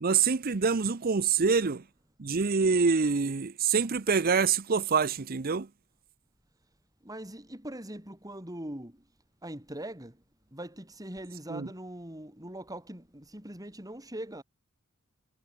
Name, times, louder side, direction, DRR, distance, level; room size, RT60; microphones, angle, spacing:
voice 1, 0.0-1.8 2.2-5.7 11.5-11.7, right 5 dB, 45° right, 0.7 m, -26 dB
voice 2, 7.0-9.0 9.4-10.2 10.5-14.4, right 1 dB, 15° right, 5.7 m, -41 dB
head